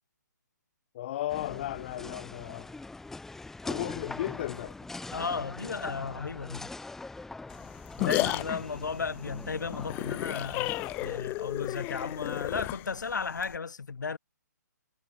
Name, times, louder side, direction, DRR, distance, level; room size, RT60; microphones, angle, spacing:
voice 1, 0.9-2.7 3.6-4.8, left 14 dB, 35° left, 1.0 m, -35 dB
sound 1, 1.3-11.2, left 3 dB, 5° left, 1.7 m, -42 dB
voice 2, 5.1-6.7 8.0-14.2, left 5 dB, 80° left, 2.1 m, -34 dB
sound 2, 7.5-13.6, left 21 dB, 20° left, 1.3 m, -33 dB
hypercardioid pair, 150°, 10 cm